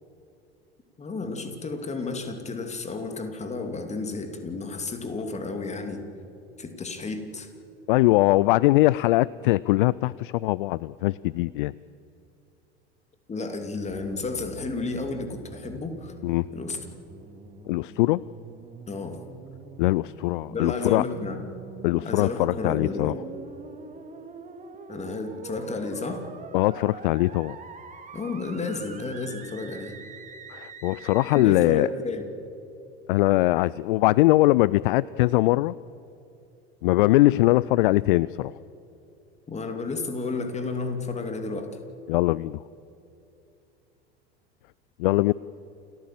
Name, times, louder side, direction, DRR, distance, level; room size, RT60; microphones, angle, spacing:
voice 1, 1.0-6.0 6.6-7.5 13.3-16.1 16.5-16.8 18.9-19.2 20.5-21.4 22.0-23.2 24.9-26.3 28.1-29.9 31.3-32.2 39.5-41.8, left 3 dB, 20° left, 6 dB, 2.7 m, -32 dB
voice 2, 7.9-11.7 16.2-16.5 17.7-18.2 19.8-21.0 21.8-23.1 26.5-27.6 30.5-31.9 33.1-35.7 36.8-38.5 42.1-42.6 45.0-45.3, left 19 dB, 55° left, 21 dB, 0.4 m, -21 dB
sound 1, 13.9-31.4, right 5 dB, 25° right, 2.3 m, -44 dB
28.5 x 14.0 x 7.6 m, 2.8 s
figure-of-eight pair, 75°, 32 cm